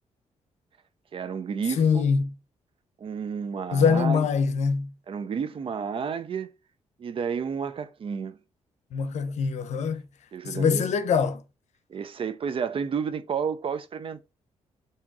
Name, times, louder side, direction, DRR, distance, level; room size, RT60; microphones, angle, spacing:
voice 1, 1.1-2.1 3.0-4.3 5.1-6.5 7.0-8.4 10.3-10.9 11.9-14.2, right 6 dB, 50° right, 0.5 m, -31 dB
voice 2, 1.8-2.3 3.7-4.9 8.9-10.0 10.4-11.4, left 6 dB, 75° left, 0.6 m, -23 dB
3.6 x 2.8 x 4.6 m
cardioid pair, 100°, 12 cm